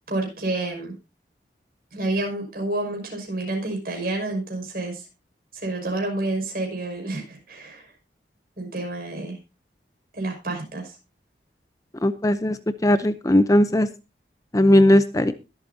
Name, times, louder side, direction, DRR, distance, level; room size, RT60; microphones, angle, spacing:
voice 1, 0.1-0.9 1.9-5.1 5.6-7.8 8.6-9.4 10.1-11.0, right 2 dB, 55° right, 1 dB, 5.7 m, -29 dB
voice 2, 12.0-12.6 12.8-13.9 14.5-15.3, left 1 dB, 20° left, 11 dB, 0.6 m, -18 dB
22.0 x 8.0 x 2.7 m, 0.28 s
head